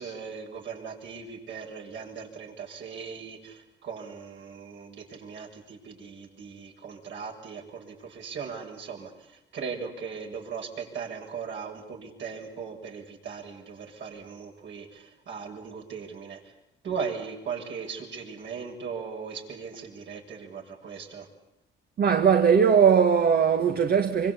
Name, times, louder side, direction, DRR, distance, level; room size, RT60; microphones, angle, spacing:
voice 1, 0.0-9.1 9.5-16.4 16.8-21.3, right 6 dB, 70° right, 6.8 m, -38 dB
voice 2, 22.0-24.3, right 7 dB, 50° right, 1.7 m, -20 dB
25.5 x 25.0 x 8.5 m
cardioid pair, 90°, 20 cm